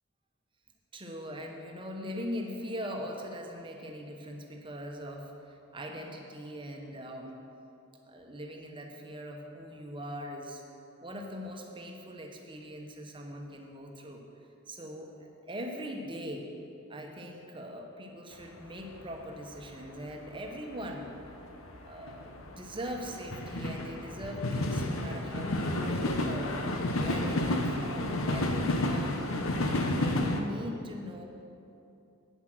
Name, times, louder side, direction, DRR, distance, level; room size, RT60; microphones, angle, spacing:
voice 1, 0.9-7.4 8.0-10.6 11.0-14.2 14.7-16.5 16.9-21.1 21.7-29.2 29.6-31.2, equal, 25° right, 2 dB, 1.1 m, -41 dB
sound 1, 18.5-18.6 18.8-19.6 19.9-30.4, left 1 dB, 75° left, 0.9 m, -31 dB
9.2 x 8.1 x 6.2 m, 2.7 s
head